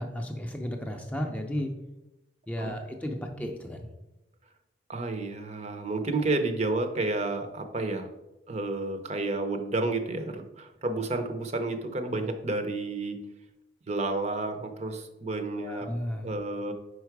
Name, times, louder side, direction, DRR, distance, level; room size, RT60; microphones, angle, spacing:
voice 1, 0.0-1.7 2.5-3.9 15.6-16.3, equal, 10° left, 2 dB, 0.4 m, -34 dB
voice 2, 4.9-8.1 8.5-13.2 13.9-15.9 16.2-16.7, right 2 dB, 35° right, 7 dB, 0.6 m, -31 dB
5.1 x 4.7 x 4.6 m, 0.97 s
head